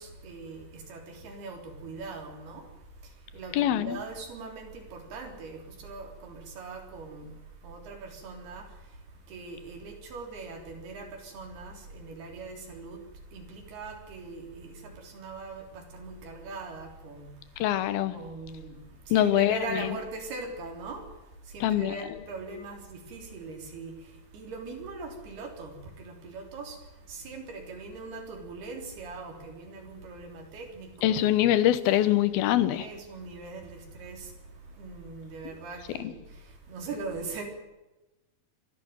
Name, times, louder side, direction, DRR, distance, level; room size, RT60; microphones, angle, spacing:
voice 1, 0.0-17.7 18.1-31.2 32.8-37.4, right 3 dB, 75° right, 5.5 m, -41 dB
voice 2, 3.5-4.0 17.6-18.1 19.1-19.8 21.6-22.0 31.0-32.8, left 12 dB, 75° left, 2.9 m, -23 dB
25.0 x 12.0 x 9.4 m
omnidirectional pair, 4.6 m